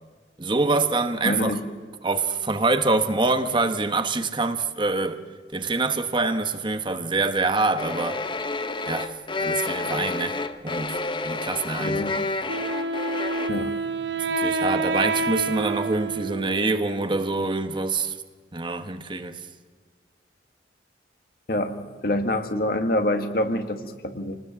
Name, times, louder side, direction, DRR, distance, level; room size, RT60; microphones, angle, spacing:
voice 1, 0.4-1.6 2.0-5.2 5.5-8.2 8.9-12.0 14.2-18.2 18.5-19.5, right 3 dB, 25° right, 1.2 m, -25 dB
voice 2, 1.2-1.7 11.8-12.2 13.5-13.7 21.5-24.4, left 1 dB, 55° left, 1.8 m, -26 dB
sound 1, 7.8-13.5, left 3 dB, 25° left, 0.9 m, -29 dB
Wind instrument woodwind instrument, 12.5-17.3, right 3 dB, 80° right, 1.3 m, -28 dB
28.0 x 19.5 x 7.5 m
head